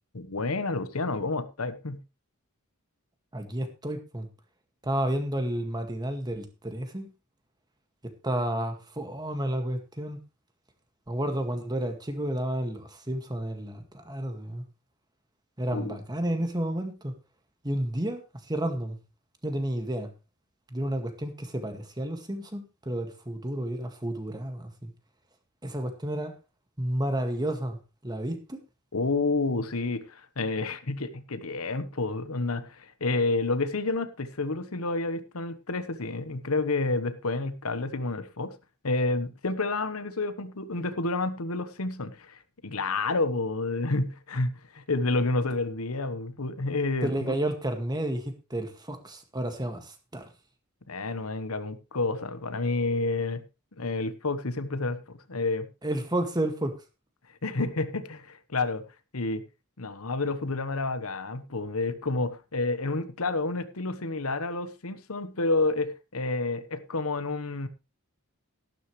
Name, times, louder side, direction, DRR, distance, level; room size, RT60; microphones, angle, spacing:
voice 1, 0.1-2.0 15.7-16.0 28.9-38.5 38.8-47.3 50.9-53.4 53.8-55.7 57.4-58.8 59.1-59.4 59.8-67.7, left 3 dB, 80° left, 1.2 m, -29 dB
voice 2, 3.3-4.3 4.8-7.1 8.2-10.2 11.1-14.7 15.6-17.1 17.6-18.2 18.5-19.0 19.4-20.1 20.7-24.9 25.6-26.3 26.8-27.8 28.0-28.6 47.0-50.3 55.8-56.8, right 1 dB, 20° right, 1.9 m, -31 dB
13.5 x 12.0 x 3.2 m
head